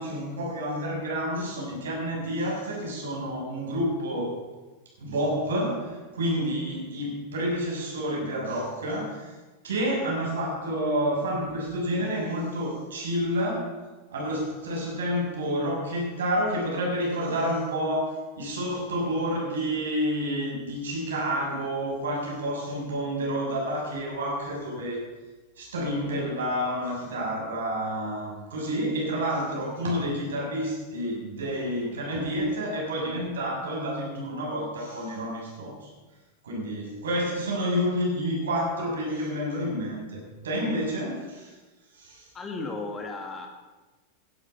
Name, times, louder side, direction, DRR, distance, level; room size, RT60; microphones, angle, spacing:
voice 1, 0.0-4.4 5.0-9.3 9.6-13.8 14.1-25.1 25.6-35.9 36.4-41.6 41.9-42.3, equal, 65° right, -2 dB, 6.9 m, -29 dB
voice 2, 42.3-43.5, left 3 dB, 20° left, 3 dB, 2.2 m, -34 dB
16.5 x 12.0 x 5.8 m, 1.2 s
figure-of-eight pair, 90°, 0 cm